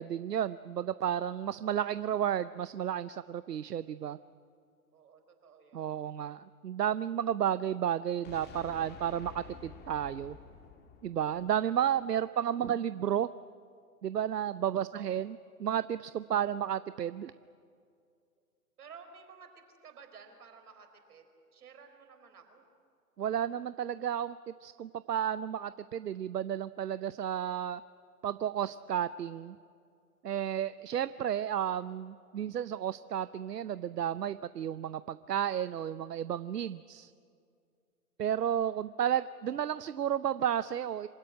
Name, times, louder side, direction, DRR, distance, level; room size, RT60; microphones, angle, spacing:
voice 1, 0.0-4.2 5.7-10.4 11.0-13.3 14.0-17.3 23.2-27.8 28.2-29.6 30.2-37.1 38.2-41.1, right 9 dB, 90° right, 15 dB, 0.7 m, -32 dB
voice 2, 4.9-5.9 14.9-15.1 18.8-21.2 21.5-22.6, right 6 dB, 70° right, 6 dB, 4.7 m, -53 dB
sound 1, 8.2-12.2, left 6 dB, 20° left, 1.8 m, -51 dB
26.0 x 16.5 x 9.7 m, 2.3 s
hypercardioid pair, 125°, 46 cm